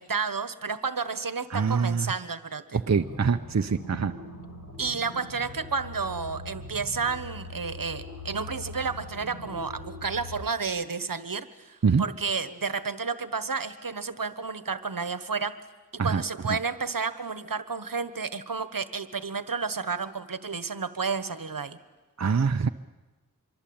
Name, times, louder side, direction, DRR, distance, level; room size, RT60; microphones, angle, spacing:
voice 1, 0.0-2.8 4.8-15.6 16.0-21.8, right 5 dB, 75° right, 13 dB, 1.3 m, -31 dB
voice 2, 1.5-2.1 2.7-4.1 11.8-12.0 16.0-16.2 16.5-16.6 22.2-22.7, right 5 dB, 50° right, 7 dB, 0.8 m, -24 dB
sound 1, 2.9-10.4, left 1 dB, 50° left, 5.9 m, -42 dB
25.5 x 23.5 x 8.8 m, 1.2 s
wide cardioid pair, 50°, 35 cm